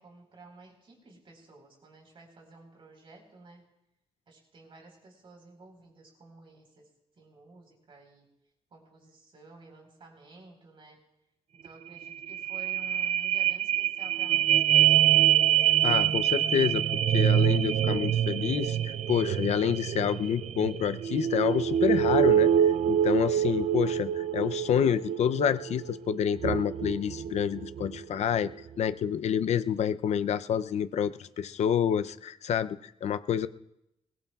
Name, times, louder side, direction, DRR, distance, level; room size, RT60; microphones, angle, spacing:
voice 1, 0.0-3.7 4.3-6.9 7.2-8.3 8.7-11.0 11.6-15.3 24.6-25.2, right 2 dB, 50° right, 2 dB, 4.3 m, -53 dB
sound 1, 11.7-11.8 12.0-28.0 28.4-28.5, right 10 dB, 70° right, 0.4 m, -25 dB
voice 2, 15.8-28.5 28.8-33.5, left 8 dB, 80° left, 12 dB, 0.5 m, -28 dB
22.0 x 21.0 x 2.4 m, 0.85 s
wide cardioid pair, 150°, 11 cm